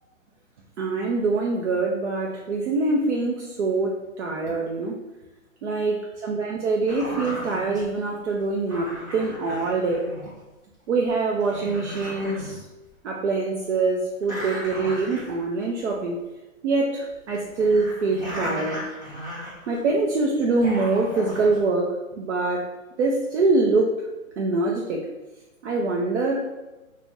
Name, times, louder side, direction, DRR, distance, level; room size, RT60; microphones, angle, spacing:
voice 1, 0.8-4.9 5.6-10.1 10.9-12.6 13.0-16.2 16.6-18.9 19.7-22.7 23.0-24.0 24.4-25.0 25.6-26.5, right 3 dB, 55° right, -1 dB, 0.5 m, -24 dB
sound 1, 6.9-7.9 8.7-10.4 11.1-11.2 11.4-12.6 12.8-12.9 14.2-15.6 15.9-16.0 17.1-20.0 20.4-21.6, left 1 dB, 10° right, 0.9 m, -36 dB
2.5 x 2.1 x 3.4 m, 1.1 s
hypercardioid pair, 150°, 42 cm